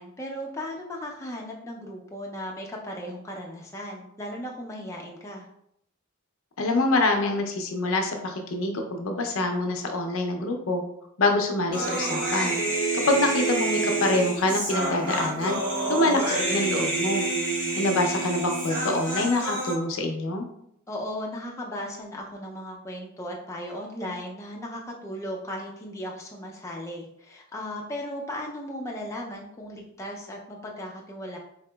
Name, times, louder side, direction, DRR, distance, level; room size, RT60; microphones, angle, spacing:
voice 1, 0.0-5.5 15.8-16.3 20.9-31.4, equal, 15° left, -2 dB, 0.4 m, -36 dB
voice 2, 6.6-10.8 11.2-12.5 12.9-15.6 15.9-17.2 17.8-20.4, left 2 dB, 70° left, 4 dB, 0.5 m, -25 dB
Human voice, 11.7-19.7, right 2 dB, 40° right, 1.2 m, -28 dB
4.1 x 2.8 x 2.2 m, 0.76 s
head